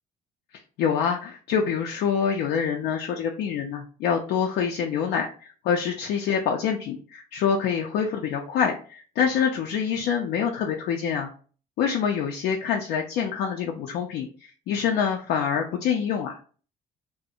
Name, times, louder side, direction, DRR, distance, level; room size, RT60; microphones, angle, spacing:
voice 1, 0.8-11.3 11.8-16.4, left 7 dB, 75° left, 2 dB, 0.4 m, -26 dB
2.4 x 2.0 x 2.7 m, 0.40 s
cardioid pair, 110°, 17 cm